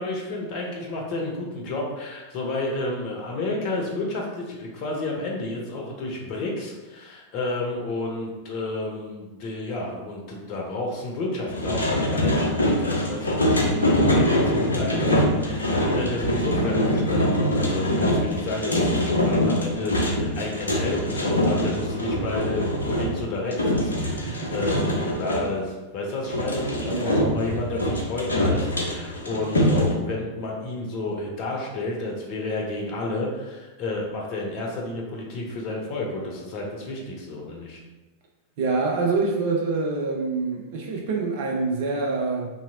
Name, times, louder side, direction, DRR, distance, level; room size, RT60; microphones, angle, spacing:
voice 1, 0.0-24.9 25.2-37.8, left 2 dB, 40° left, -1 dB, 0.7 m, -31 dB
sound 1, 11.5-25.5 26.2-29.9, left 1 dB, 75° left, 0.5 m, -24 dB
voice 2, 26.9-27.4 38.6-42.5, right 3 dB, 50° right, -1 dB, 0.5 m, -26 dB
2.8 x 2.6 x 2.8 m, 1.2 s
figure-of-eight pair, 90°, 0 cm